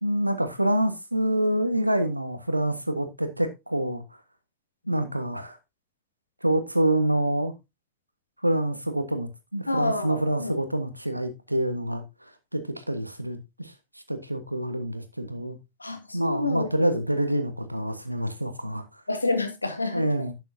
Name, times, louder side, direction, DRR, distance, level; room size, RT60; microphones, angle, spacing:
voice 1, 0.0-4.0 4.9-5.6 6.4-7.5 8.4-12.0 12.5-13.7 14.1-15.6 16.1-18.9 19.9-20.3, right 1 dB, 85° right, 1.3 m, -26 dB
voice 2, 9.7-10.5 15.8-16.7 19.1-20.1, left 2 dB, 80° left, 1.6 m, -28 dB
11.0 x 8.2 x 2.7 m
figure-of-eight pair, 90°, 0 cm